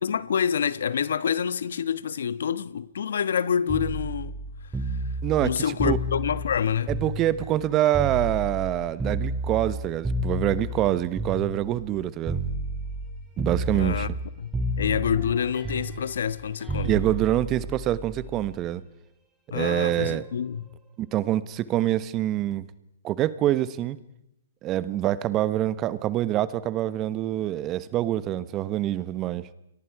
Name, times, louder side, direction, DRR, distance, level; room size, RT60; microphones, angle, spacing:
voice 1, 0.0-4.4 5.4-6.9 13.7-14.1 14.4-16.9 19.5-20.7, left 7 dB, 75° left, 1.2 m, -27 dB
sound 1, 3.7-7.6 7.9-12.0 12.3-13.1 13.4-14.3 14.5-18.5 19.7-20.0, right 1 dB, 10° right, 5.1 m, -31 dB
voice 2, 5.2-5.5 5.8-6.0 6.9-12.4 13.4-14.1 16.8-18.8 19.5-20.3 21.0-22.7 23.0-24.0 24.6-29.5, right 13 dB, 25° right, 1.1 m, -25 dB
29.5 x 24.0 x 4.8 m
hypercardioid pair, 140°, 0 cm